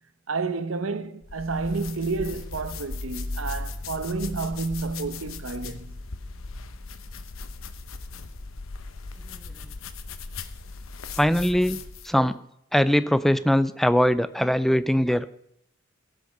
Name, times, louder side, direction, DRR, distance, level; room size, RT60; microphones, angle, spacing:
voice 1, 0.3-6.0, right 3 dB, 75° right, 0.9 m, -30 dB
sound 1, 1.2-12.2, left 3 dB, 85° left, 0.9 m, -37 dB
voice 2, 11.2-12.4 12.7-15.3, equal, ahead, 0.4 m, -22 dB
16.0 x 6.4 x 6.7 m
head